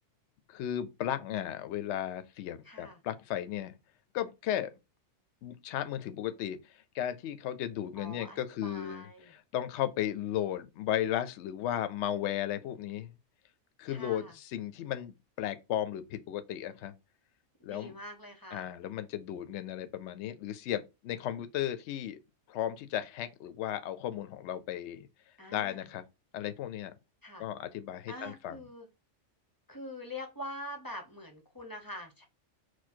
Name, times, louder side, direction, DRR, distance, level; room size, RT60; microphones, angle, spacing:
voice 1, 0.5-3.8 4.1-4.7 5.4-6.6 6.9-13.1 13.8-16.9 17.6-18.0 18.5-22.2 22.5-25.1 25.5-26.0 26.3-26.9 27.4-28.6, left 11 dB, 70° left, 0.8 m, -35 dB
voice 2, 2.6-3.0 8.0-9.3 13.9-14.3 17.6-18.6 25.4-25.9 27.2-27.5 28.1-28.9 29.7-32.2, left 1 dB, 20° left, 0.7 m, -44 dB
4.5 x 2.2 x 4.3 m
omnidirectional pair, 1.3 m